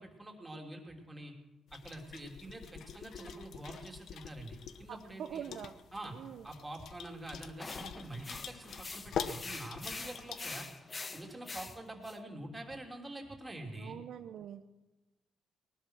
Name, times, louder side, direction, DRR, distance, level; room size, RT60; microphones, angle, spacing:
voice 1, 0.0-1.3 1.7-5.5 5.9-6.1 6.4-10.7 11.1-14.0, right 1 dB, 15° right, 1 dB, 3.2 m, -46 dB
sound 1, 1.7-10.6, left 7 dB, 65° left, 0.9 m, -45 dB
voice 2, 4.9-5.7 6.1-6.5 13.8-14.6, right 9 dB, 70° right, 8 dB, 0.7 m, -44 dB
sound 2, 7.6-12.2, left 3 dB, 30° left, 1.2 m, -45 dB
19.5 x 11.5 x 6.4 m, 1.1 s
cardioid pair, 90°, 0 cm